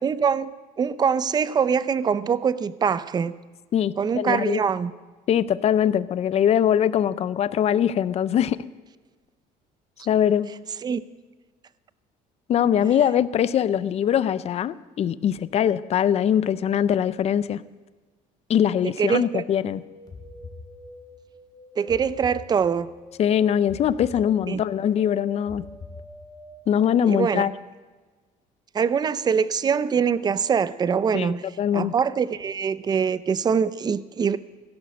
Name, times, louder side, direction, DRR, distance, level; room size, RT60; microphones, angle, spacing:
voice 1, 0.0-0.5 0.8-3.3 4.0-4.9 10.8-11.0 19.0-19.4 21.8-22.9 24.5-24.6 27.1-27.4 28.7-31.4 31.7-34.4, right 6 dB, 25° right, 15 dB, 0.5 m, -23 dB
voice 2, 3.7-4.6 5.3-8.6 10.1-10.5 12.5-17.6 18.5-19.8 23.2-25.6 26.7-27.5 31.1-31.9, left 9 dB, 40° left, 16 dB, 0.5 m, -22 dB
sound 1, 18.5-26.8, equal, ahead, 4.0 m, -47 dB
sound 2, 20.1-21.2 21.9-23.0 23.7-24.8 25.5-26.6, left 4 dB, 25° left, 1.1 m, -44 dB
16.0 x 11.5 x 6.5 m, 1.3 s
cardioid pair, 125°, 16 cm